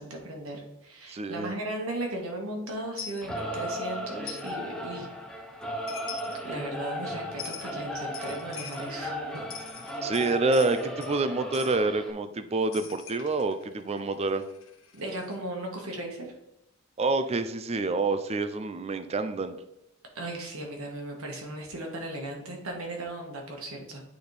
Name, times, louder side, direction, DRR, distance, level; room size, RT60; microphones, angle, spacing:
voice 1, 0.0-5.1 5.7-5.8 6.4-9.5 14.9-16.3 20.1-24.0, right 1 dB, 80° right, 1 dB, 1.6 m, -36 dB
voice 2, 1.1-1.5 10.0-14.5 17.0-19.6, right 3 dB, 30° right, 10 dB, 0.4 m, -27 dB
Coin (dropping), 3.0-3.2 4.3-4.5 5.6-5.7 5.9-6.4 7.4-7.7 8.1-8.9 9.4-11.2 11.5-11.8 12.7-15.4, left 7 dB, 70° left, 1.1 m, -43 dB
Singing / Musical instrument, 3.2-12.1, equal, 5° left, 0.7 m, -36 dB
8.9 x 4.2 x 3.4 m, 0.89 s
head